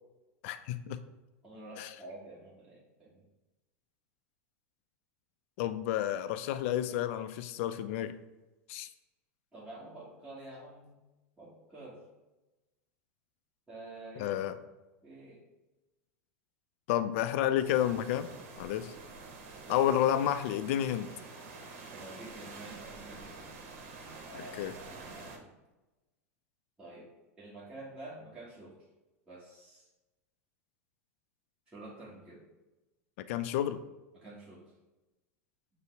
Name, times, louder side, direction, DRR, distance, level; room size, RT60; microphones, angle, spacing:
voice 1, 0.4-1.0 1.8-1.9 5.6-8.2 8.7-8.9 14.2-14.5 16.9-18.3 18.6-18.9 19.7-21.1 24.6-24.7 33.3-33.8, left 11 dB, 60° left, 11 dB, 0.3 m, -30 dB
voice 2, 1.4-3.2 9.5-10.9 11.4-12.0 13.7-14.4 15.0-15.4 19.6-19.8 21.9-23.6 24.2-25.5 26.8-27.1 27.4-28.8 29.3-29.9 31.7-32.4 34.1-34.7, right 2 dB, 10° right, -9 dB, 1.4 m, -48 dB
sound 1, 17.6-25.4, right 3 dB, 60° right, 0.9 m, -48 dB
5.5 x 2.1 x 4.5 m, 1.1 s
hypercardioid pair, 105°, 8 cm